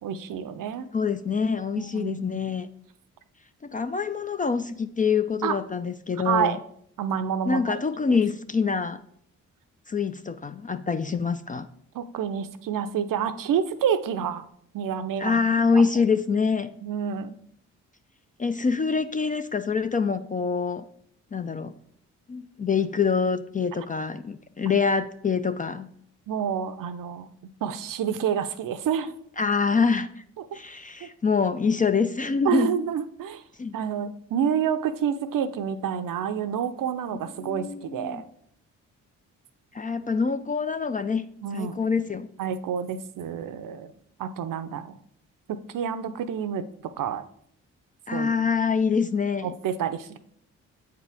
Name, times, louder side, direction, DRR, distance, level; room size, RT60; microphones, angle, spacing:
voice 1, 0.0-0.9 1.7-2.4 5.4-5.6 6.2-6.6 7.0-7.8 11.9-14.4 14.7-15.4 15.7-15.8 16.8-17.4 24.6-24.8 26.3-27.3 27.6-29.1 31.0-31.1 32.4-33.4 33.7-38.3 41.4-41.8 42.4-43.9 44.2-44.9 45.5-46.7 47.0-47.2 48.1-48.4 49.4-50.2, right 8 dB, 55° right, 11 dB, 0.6 m, -28 dB
voice 2, 0.9-2.7 3.7-6.6 7.5-9.0 9.9-11.7 15.2-16.7 18.4-20.9 21.3-21.7 22.3-25.9 29.4-30.1 30.5-32.8 33.6-33.8 37.4-38.2 39.7-41.3 41.5-42.3 48.1-49.5, left 5 dB, 20° left, 10 dB, 0.4 m, -25 dB
7.7 x 4.7 x 3.4 m, 0.67 s
hypercardioid pair, 40°, 39 cm